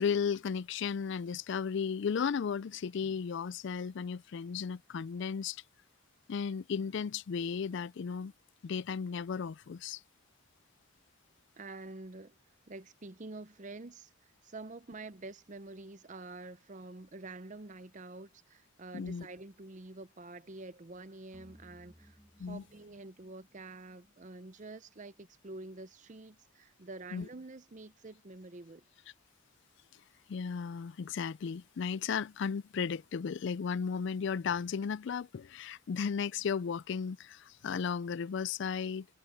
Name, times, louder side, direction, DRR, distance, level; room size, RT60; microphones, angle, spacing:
voice 1, 0.0-5.6 6.3-8.3 8.6-10.0 18.9-19.3 22.4-22.6 27.1-27.3 30.3-39.1, left 6 dB, 55° left, 0.3 m, -35 dB
voice 2, 11.6-12.4 12.7-28.8, right 2 dB, 35° right, 0.7 m, -47 dB
sound 1, 21.3-24.6, equal, 10° right, 1.4 m, -61 dB
head